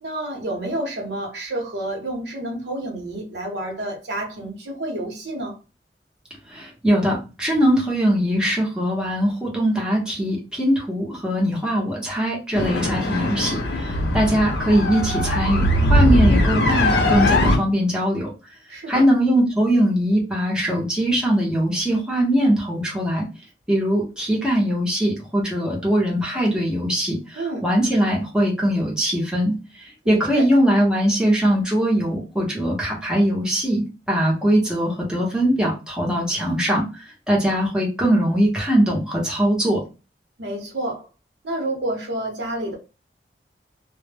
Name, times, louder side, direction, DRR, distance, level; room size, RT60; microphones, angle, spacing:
voice 1, 0.0-5.6 18.7-19.1 27.3-27.7 30.0-30.5 40.4-41.1 41.4-42.7, right 1 dB, 75° right, 0.8 m, -29 dB
voice 2, 6.5-18.3 18.9-23.3 23.7-29.5 30.1-36.9 37.3-39.8, equal, 5° right, 0.7 m, -21 dB
sound 1, 12.6-17.6, left 1 dB, 75° left, 0.6 m, -20 dB
2.1 x 2.0 x 3.3 m
head